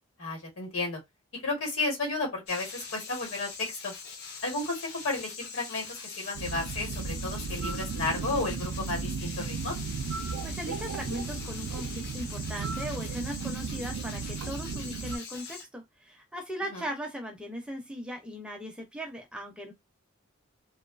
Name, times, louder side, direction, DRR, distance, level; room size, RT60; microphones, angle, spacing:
voice 1, 0.2-1.0 1.4-3.9 4.4-9.7 16.7-16.8, left 3 dB, 75° left, 1.2 m, -33 dB
sound 1, 2.5-15.6, left 5 dB, 50° left, 0.6 m, -43 dB
sound 2, 6.3-15.2, right 5 dB, 85° right, 0.3 m, -35 dB
voice 2, 10.2-19.7, equal, 5° right, 0.4 m, -38 dB
2.5 x 2.3 x 2.3 m
head